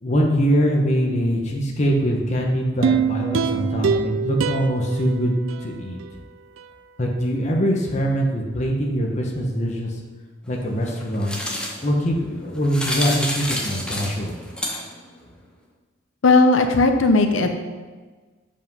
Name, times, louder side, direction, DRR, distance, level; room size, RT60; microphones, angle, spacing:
voice 1, 0.0-5.3 5.6-6.0 7.0-9.9 10.5-11.4 11.8-14.3, equal, 35° left, 0 dB, 1.0 m, -23 dB
sound 1, 2.8-6.1 6.6-6.7, right 6 dB, 85° right, 0.4 m, -24 dB
sound 2, 10.4-15.1, left 1 dB, 5° left, 1.1 m, -30 dB
voice 2, 16.2-17.5, left 3 dB, 80° left, 6 dB, 0.7 m, -16 dB
7.6 x 5.3 x 5.4 m, 1.4 s
head